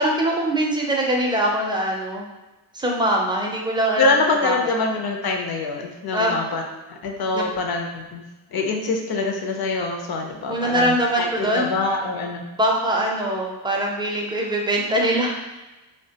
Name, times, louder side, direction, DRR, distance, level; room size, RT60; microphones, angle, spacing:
voice 1, 0.0-2.2 2.7-4.1 4.4-4.6 6.1-6.4 7.3-7.5 10.5-11.7 12.6-15.3, right 1 dB, 10° right, -1 dB, 0.4 m, -22 dB
voice 2, 4.0-6.6 6.9-8.2 8.5-12.4, left 3 dB, 60° left, 2 dB, 0.5 m, -24 dB
3.1 x 2.1 x 2.7 m, 1.1 s
wide cardioid pair, 105°, 43 cm